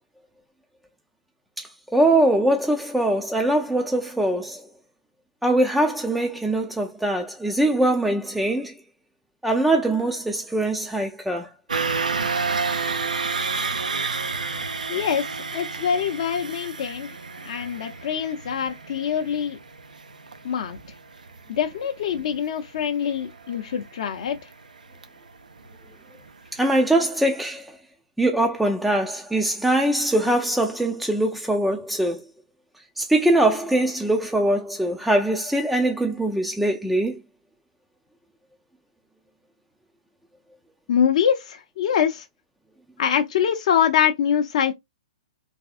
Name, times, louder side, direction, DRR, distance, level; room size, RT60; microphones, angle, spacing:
voice 1, 1.6-4.6 5.4-8.7 9.4-11.5 26.5-27.8 28.2-32.2 33.0-37.2, right 1 dB, ahead, 0.4 m, -22 dB
sound 1, 11.7-25.7 26.1-26.3 26.6-26.7, right 4 dB, 80° right, 0.6 m, -30 dB
voice 2, 14.9-15.2 15.5-17.1 17.4-19.6 20.4-20.8 21.5-24.4 40.9-42.3 43.0-44.7, left 8 dB, 55° left, 0.5 m, -24 dB
3.4 x 3.3 x 2.4 m
figure-of-eight pair, 115°, 4 cm